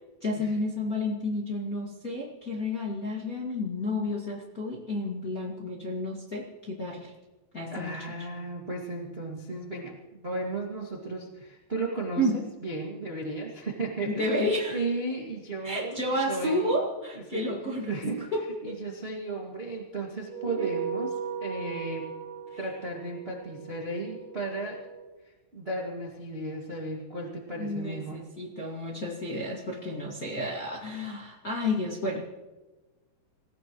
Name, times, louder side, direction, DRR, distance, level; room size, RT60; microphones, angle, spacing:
voice 1, 0.2-7.1 7.5-7.9 12.2-12.4 14.0-14.8 15.6-18.0 18.3-18.8 20.6-20.7 22.5-22.6 27.6-32.3, left 1 dB, 30° left, -4 dB, 1.6 m, -31 dB
voice 2, 7.7-14.4 14.7-16.0 16.3-16.7 17.3-17.5 17.8-18.2 18.6-22.1 22.6-24.9 25.5-28.2, right 2 dB, 30° right, -2 dB, 1.1 m, -35 dB
sound 1, 20.3-25.1, right 7 dB, 80° right, 1.6 m, -37 dB
27.0 x 16.5 x 3.1 m, 1.2 s
omnidirectional pair, 4.9 m